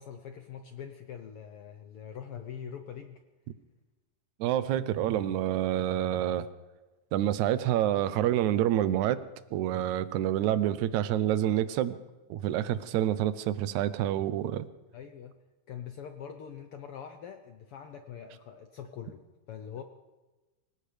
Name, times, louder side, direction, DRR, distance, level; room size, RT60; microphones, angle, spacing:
voice 1, 0.0-3.2 14.9-15.4 15.7-19.2 19.5-19.8, left 8 dB, 80° left, 6 dB, 1.3 m, -43 dB
voice 2, 4.4-6.5 7.1-9.2 9.5-12.0 12.3-14.7, right 12 dB, 75° right, 13 dB, 2.0 m, -27 dB
25.0 x 17.0 x 3.4 m, 1.2 s
omnidirectional pair, 3.6 m